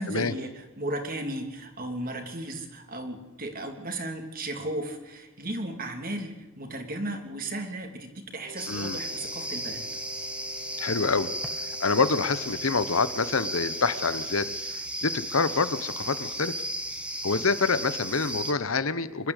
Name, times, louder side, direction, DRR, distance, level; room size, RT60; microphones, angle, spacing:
voice 1, 0.0-9.8, right 1 dB, 40° right, 5 dB, 3.2 m, -35 dB
Wind instrument woodwind instrument, 8.4-14.1, left 3 dB, 60° right, 3.3 m, -47 dB
sound 1, 8.6-18.5, right 1 dB, 5° right, 1.7 m, -35 dB
voice 2, 8.7-9.0 10.8-11.3 11.8-16.5 17.2-19.3, left 4 dB, 75° left, 14 dB, 1.1 m, -27 dB
25.0 x 13.0 x 8.3 m, 1.1 s
head